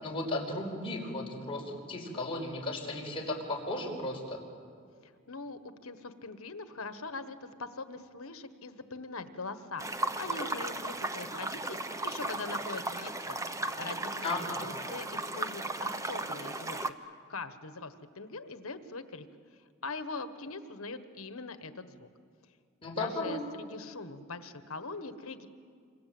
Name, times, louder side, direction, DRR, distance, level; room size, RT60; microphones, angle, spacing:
voice 1, 0.0-4.4 14.2-14.6 22.8-23.4, left 2 dB, 25° left, -1 dB, 4.8 m, -35 dB
voice 2, 5.0-14.3 14.6-19.3 19.8-22.1 22.9-25.5, left 3 dB, 75° left, 10 dB, 1.4 m, -42 dB
sound 1, 9.8-16.9, right 2 dB, 15° right, 0.9 m, -36 dB
27.0 x 26.0 x 7.8 m, 2.2 s
head